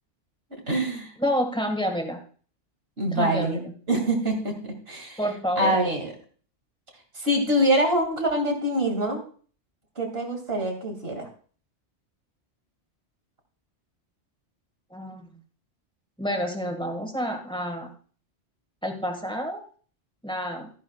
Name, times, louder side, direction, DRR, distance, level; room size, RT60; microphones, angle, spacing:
voice 1, 0.7-1.1 3.0-3.6 3.9-5.2 5.6-6.1 7.2-9.2 10.0-11.3, right 1 dB, 60° right, 3 dB, 2.8 m, -25 dB
voice 2, 1.2-2.2 3.1-3.7 5.2-5.8 14.9-15.4 16.2-17.9 18.8-19.7 20.2-20.7, equal, 5° left, 4 dB, 1.8 m, -29 dB
13.5 x 10.5 x 2.4 m, 0.43 s
omnidirectional pair, 1.1 m